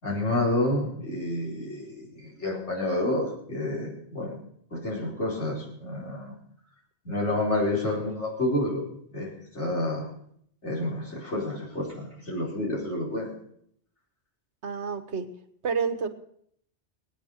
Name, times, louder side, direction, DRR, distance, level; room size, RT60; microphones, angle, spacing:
voice 1, 0.0-4.4 4.7-6.3 7.0-8.8 9.1-10.1 10.6-13.3, left 1 dB, 80° left, -5 dB, 5.0 m, -29 dB
voice 2, 14.6-15.3 15.6-16.1, right 5 dB, 70° right, 9 dB, 1.5 m, -29 dB
19.5 x 9.1 x 6.4 m, 0.67 s
omnidirectional pair, 1.2 m